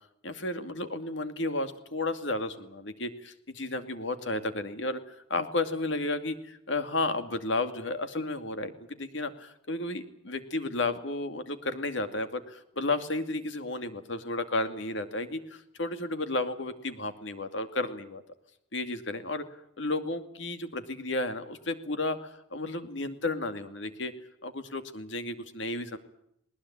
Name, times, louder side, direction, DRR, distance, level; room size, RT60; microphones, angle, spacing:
voice 1, 0.2-18.2 18.7-19.4 19.8-24.1 24.4-26.0, left 2 dB, 65° left, 9 dB, 2.4 m, -33 dB
20.5 x 20.0 x 10.0 m, 0.77 s
head